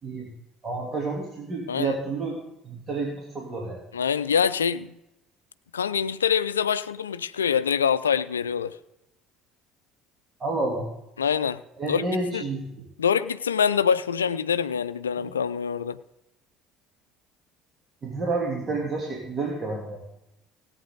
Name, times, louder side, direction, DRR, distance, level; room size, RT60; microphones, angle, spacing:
voice 1, 0.6-3.8 10.4-10.9 11.8-12.7 18.0-20.0, right 3 dB, 35° right, -2 dB, 3.0 m, -30 dB
voice 2, 3.9-4.9 5.7-8.8 11.2-11.6 11.9-12.1 12.3-12.4 13.0-16.0, left 7 dB, 90° left, 15 dB, 0.4 m, -25 dB
17.5 x 9.0 x 3.9 m, 0.89 s
hypercardioid pair, 60°, 0 cm